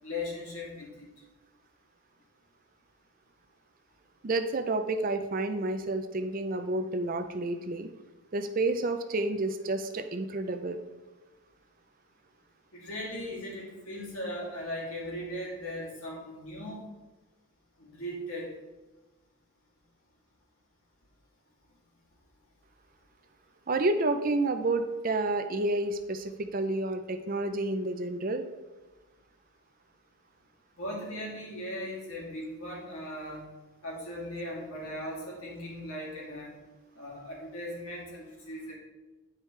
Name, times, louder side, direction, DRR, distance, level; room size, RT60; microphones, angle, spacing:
voice 1, 0.0-1.1 12.7-16.8 17.8-18.5 30.8-33.4 33.8-36.6 37.0-38.7, left 1 dB, 80° left, -4 dB, 2.6 m, -38 dB
voice 2, 4.2-7.9 8.3-10.8 23.7-28.4, right 2 dB, 40° right, 8 dB, 0.5 m, -30 dB
10.5 x 4.8 x 3.3 m, 1.1 s
head